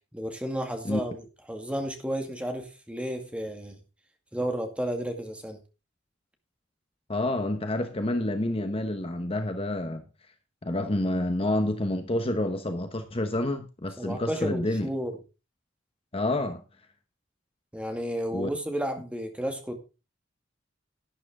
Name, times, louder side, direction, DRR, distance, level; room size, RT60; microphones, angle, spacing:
voice 1, 0.1-3.8 4.3-5.6 14.0-15.1 17.7-19.8, equal, 5° right, 2.2 m, -32 dB
voice 2, 7.1-10.0 10.6-14.9 16.1-16.6 18.3-18.5, left 1 dB, 30° left, 1.0 m, -28 dB
12.0 x 10.5 x 3.7 m
head